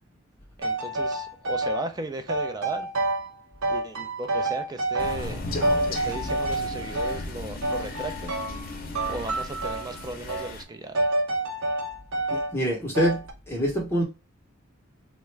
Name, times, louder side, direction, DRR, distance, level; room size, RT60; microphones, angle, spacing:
voice 1, 0.6-2.9 3.7-5.5 5.9-8.3 9.1-11.1, right 2 dB, 20° right, 0.4 m, -36 dB
sound 1, 0.6-1.9 2.3-3.4 3.6-5.3 5.6-7.2 7.6-8.7 8.9-9.9 10.3-10.5 10.9-12.5 12.9-13.3, right 2 dB, 85° right, 0.7 m, -28 dB
Crow, 5.0-10.6, left 2 dB, 45° left, 0.7 m, -35 dB
voice 2, 12.3-13.2 13.5-14.0, equal, 10° left, 0.8 m, -25 dB
3.5 x 2.1 x 3.1 m
head